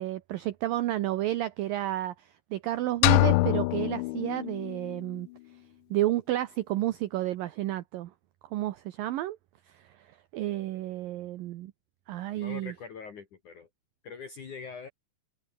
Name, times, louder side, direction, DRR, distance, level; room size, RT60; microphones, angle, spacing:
voice 1, 0.0-5.3 5.9-8.1 8.5-9.4 9.7-9.8 10.3-11.7 12.1-12.7, right 14 dB, 75° right, 2.1 m, -31 dB
sound 1, 3.0-5.0, left 22 dB, 85° left, 2.9 m, -25 dB
voice 2, 12.3-13.7 14.0-14.9, left 5 dB, 50° left, 3.3 m, -43 dB
omnidirectional pair, 5.3 m